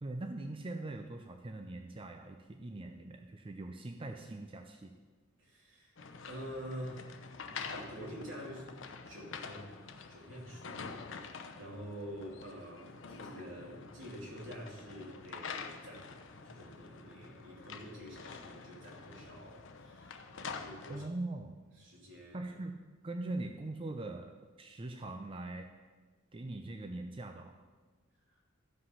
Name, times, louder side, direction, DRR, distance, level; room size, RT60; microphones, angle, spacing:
voice 1, 0.0-5.0 20.9-21.6 22.3-25.7 26.3-27.6, right 2 dB, 25° right, 5 dB, 0.5 m, -42 dB
voice 2, 5.4-6.0 6.3-7.1 7.5-8.7 9.0-9.8 10.1-20.3 20.6-21.1 21.8-22.4 28.3-28.4, equal, 75° right, -3 dB, 2.7 m, -47 dB
sound 1, 6.0-21.1, left 5 dB, 65° left, 0.7 m, -47 dB
13.5 x 5.3 x 5.6 m, 1.4 s
head